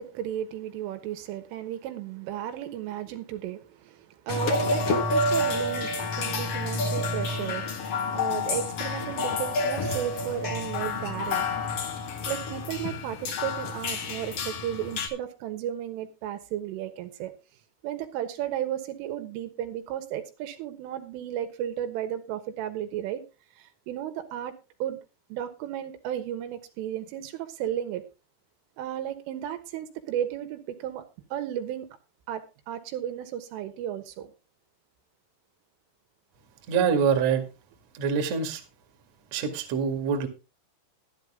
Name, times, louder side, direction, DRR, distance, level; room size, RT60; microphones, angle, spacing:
voice 1, 0.0-7.7 8.1-11.5 12.3-17.3 17.8-23.2 23.6-24.5 24.8-25.0 25.3-28.0 28.8-31.1 31.3-31.9 32.3-34.3, right 11 dB, 85° right, 8 dB, 3.9 m, -34 dB
sound 1, 4.3-15.1, left 3 dB, 65° left, 1.5 m, -29 dB
voice 2, 36.7-37.4 37.9-38.6 39.3-40.3, right 6 dB, 50° right, 5 dB, 2.3 m, -25 dB
12.0 x 12.0 x 3.7 m, 0.29 s
omnidirectional pair, 5.6 m